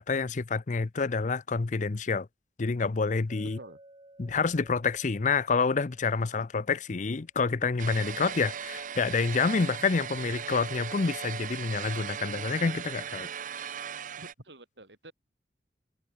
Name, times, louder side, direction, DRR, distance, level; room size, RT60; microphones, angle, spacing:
voice 1, 0.0-2.3 2.6-3.6 4.2-13.3, left 4 dB, 45° left, 0.6 m, -28 dB
Chink clink, 3.3-7.3, right 1 dB, 30° right, 5.9 m, -57 dB
sound 1, 7.8-14.3, right 7 dB, 50° right, 0.8 m, -38 dB
voice 2, 14.2-15.1, right 1 dB, 80° right, 6.8 m, -48 dB
head